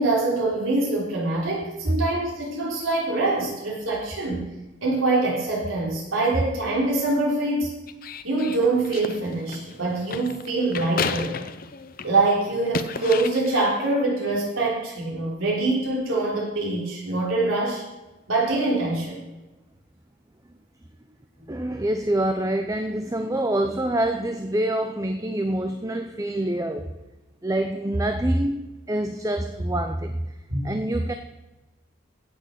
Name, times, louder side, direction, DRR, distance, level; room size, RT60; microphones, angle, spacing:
voice 1, 0.0-4.4 4.8-7.7 8.2-11.3 12.0-17.8 18.3-19.2 21.4-21.5 30.5-30.7, right 2 dB, 85° right, -4 dB, 3.7 m, -24 dB
sound 1, 7.9-12.2 12.6-13.9, left 5 dB, 45° left, 0.6 m, -33 dB
voice 2, 21.5-26.9 27.4-28.6 28.9-30.2 30.6-31.1, right 1 dB, 15° right, 6 dB, 0.6 m, -26 dB
16.0 x 6.3 x 6.6 m, 1.1 s
head